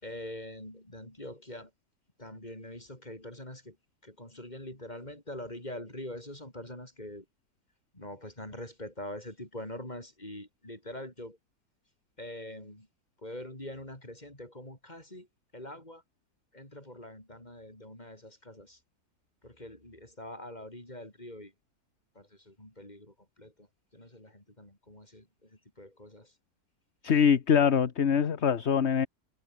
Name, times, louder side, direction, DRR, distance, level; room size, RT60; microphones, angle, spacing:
voice 1, 0.0-1.7 2.2-3.8 4.0-7.3 7.9-11.4 12.2-12.9 13.2-15.3 15.5-16.0 16.5-18.8 19.4-21.5 22.2-23.7 23.9-25.5 25.8-26.3, left 1 dB, 25° left, 6.8 m, -44 dB
voice 2, 27.0-29.1, left 7 dB, 45° left, 1.4 m, -23 dB
omnidirectional pair, 1.7 m